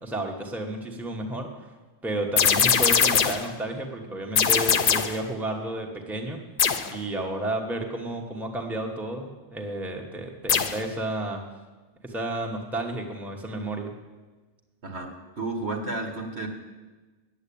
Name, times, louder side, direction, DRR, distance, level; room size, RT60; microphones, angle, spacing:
voice 1, 0.0-1.5 2.0-6.4 6.8-11.4 12.0-13.9, right 1 dB, ahead, 1 dB, 1.1 m, -32 dB
sound 1, 2.4-3.5 4.4-5.2 6.6-7.0 10.5-10.9, left 7 dB, 55° left, 0.8 m, -21 dB
voice 2, 15.4-16.5, right 2 dB, 70° right, 3 dB, 1.8 m, -31 dB
9.6 x 8.2 x 8.5 m, 1.3 s
omnidirectional pair, 1.2 m